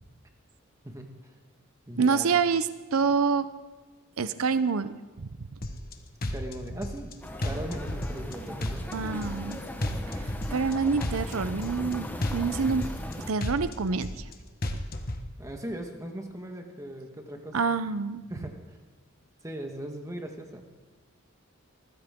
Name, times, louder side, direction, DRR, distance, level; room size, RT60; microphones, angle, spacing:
voice 1, 0.8-1.3 1.9-2.4 6.3-7.2 7.4-8.9 15.4-17.6 18.3-18.6 19.4-20.6, right 1 dB, 15° right, 3 dB, 1.4 m, -39 dB
voice 2, 2.0-3.5 4.2-4.9 5.2-5.3 8.9-9.6 10.5-12.9 13.3-14.2 17.5-18.2, right 5 dB, 75° right, 13 dB, 0.7 m, -27 dB
sound 1, 5.6-5.9 6.2-7.1 7.4-8.3 8.6-9.5 9.8-10.7 11.0-11.9 12.2-13.1 13.4-14.3 14.6-15.2, left 1 dB, 45° left, 1.2 m, -32 dB
sound 2, 7.2-13.3, left 1 dB, 10° left, 1.1 m, -38 dB
21.0 x 15.0 x 3.7 m, 1.3 s
head